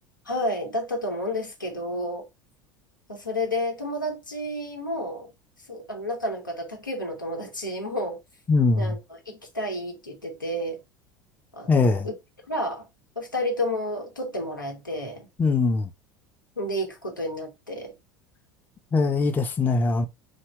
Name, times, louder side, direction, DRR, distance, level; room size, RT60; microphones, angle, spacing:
voice 1, 0.3-2.3 3.1-5.3 5.7-8.2 8.8-10.8 11.5-11.8 12.0-12.1 12.5-12.9 13.2-15.3 16.6-17.9, left 1 dB, 90° left, 0.8 m, -30 dB
voice 2, 8.5-8.9 11.7-12.1 15.4-15.9 18.9-20.1, left 3 dB, 15° left, 0.5 m, -21 dB
2.7 x 2.1 x 3.3 m
figure-of-eight pair, 75°, 10 cm